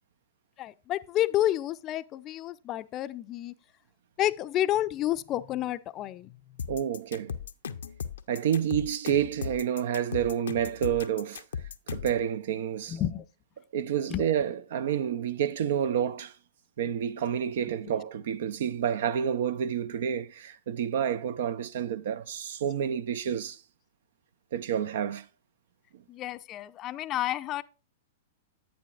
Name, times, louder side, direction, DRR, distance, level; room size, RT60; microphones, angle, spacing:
voice 1, 0.6-3.5 4.2-6.4 12.9-13.2 14.1-14.3 26.1-27.6, left 13 dB, 35° left, 0.5 m, -30 dB
sound 1, 6.6-12.2, left 7 dB, 80° left, 0.6 m, -37 dB
voice 2, 6.7-7.4 8.3-11.4 11.9-13.0 13.7-16.3 16.8-23.6 24.5-25.2, right 9 dB, 65° right, 0.6 m, -29 dB
10.5 x 8.5 x 2.4 m
hypercardioid pair, 115°, 0 cm